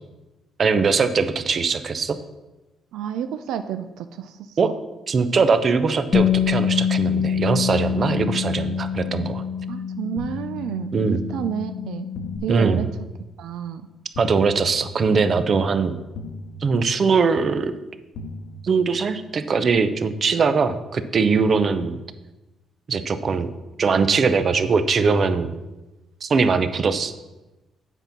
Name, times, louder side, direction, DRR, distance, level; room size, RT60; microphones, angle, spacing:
voice 1, 0.6-2.2 4.6-4.7 5.1-9.4 10.9-11.2 12.5-12.8 14.2-15.9 16.6-17.7 18.6-22.0 22.9-23.5 23.8-25.5 26.2-27.1, right 5 dB, 45° right, 11 dB, 0.7 m, -21 dB
voice 2, 2.9-4.7 9.7-12.1 12.4-12.9 13.4-13.9, right 9 dB, 85° right, 9 dB, 0.4 m, -30 dB
Bass guitar, 6.1-12.4, left 8 dB, 45° left, 0.8 m, -25 dB
sound 1, 10.2-11.3 12.2-13.3 14.2-15.3 16.2-17.3 18.2-19.3, left 1 dB, 80° left, 0.8 m, -39 dB
8.1 x 5.4 x 5.9 m, 1.0 s
cardioid pair, 90°, 0 cm